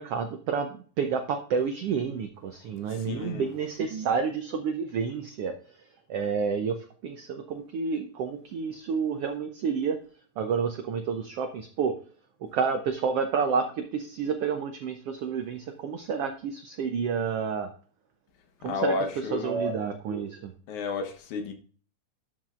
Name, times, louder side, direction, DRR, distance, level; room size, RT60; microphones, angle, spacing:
voice 1, 0.0-5.8 6.1-6.8 7.0-10.0 10.4-12.0 12.4-17.7 18.6-20.5, right 6 dB, 80° right, 1.3 m, -29 dB
voice 2, 2.8-3.5 18.6-19.7 20.7-21.5, left 4 dB, 70° left, 2.6 m, -32 dB
12.0 x 5.9 x 2.5 m
omnidirectional pair, 3.6 m